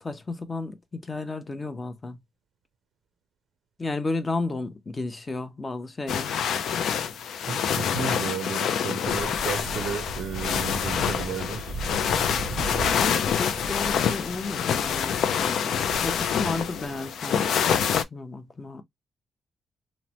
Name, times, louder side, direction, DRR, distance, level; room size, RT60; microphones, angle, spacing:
voice 1, 0.0-2.2 3.8-6.3 12.9-17.5 18.1-18.8, left 3 dB, 25° left, 0.5 m, -33 dB
sound 1, 6.1-18.0, left 8 dB, 75° left, 0.3 m, -26 dB
voice 2, 7.4-11.8, right 7 dB, 75° right, 0.5 m, -33 dB
sound 2, 9.1-17.6, right 3 dB, 25° right, 0.6 m, -38 dB
3.0 x 2.0 x 2.8 m
cardioid pair, 130°, 0 cm